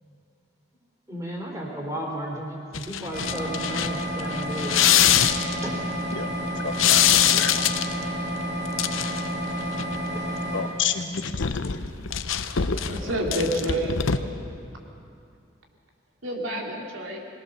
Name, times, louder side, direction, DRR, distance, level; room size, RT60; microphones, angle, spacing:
voice 1, 1.1-5.0 5.3-5.8 10.0-10.3, right 1 dB, 15° right, -1 dB, 3.6 m, -34 dB
sound 1, 2.7-5.6 6.7-8.0 8.7-9.4 9.6-10.0 11.0-14.2, left 9 dB, 85° left, 0.8 m, -23 dB
sound 2, 3.1-10.6, equal, 50° right, 7.7 m, -30 dB
voice 2, 6.6-7.6 10.5-11.8, left 6 dB, 70° left, 6 dB, 1.2 m, -30 dB
voice 3, 12.8-14.2 16.2-17.2, right 1 dB, 85° right, 0 dB, 2.9 m, -28 dB
22.0 x 19.0 x 6.7 m, 2.4 s
head